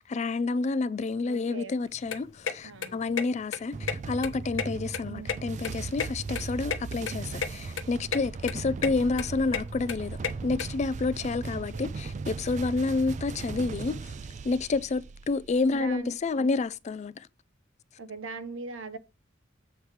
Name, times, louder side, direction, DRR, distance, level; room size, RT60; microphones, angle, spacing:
voice 1, 0.0-14.1 14.4-17.3, left 3 dB, 35° left, 0.4 m, -29 dB
voice 2, 1.2-1.8 2.6-3.0 5.0-5.4 8.6-8.9 11.5-11.9 15.6-16.5 18.0-19.0, right 3 dB, 90° right, 0.9 m, -41 dB
sound 1, 1.9-10.6, left 6 dB, 75° left, 0.9 m, -34 dB
sound 2, 3.7-15.9, right 4 dB, 40° right, 0.3 m, -38 dB
7.8 x 3.2 x 5.8 m
head